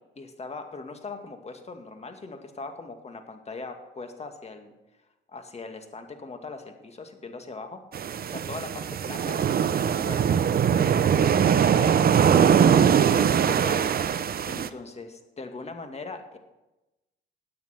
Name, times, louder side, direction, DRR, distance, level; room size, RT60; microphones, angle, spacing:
voice 1, 0.2-4.7 5.3-7.8 8.3-9.4 10.0-10.4 10.7-13.9 14.5-16.4, left 3 dB, 30° left, 6 dB, 2.2 m, -40 dB
sound 1, 7.9-14.7, right 8 dB, 50° right, 0.8 m, -21 dB
17.0 x 9.3 x 5.9 m, 1.0 s
cardioid pair, 90°, 20 cm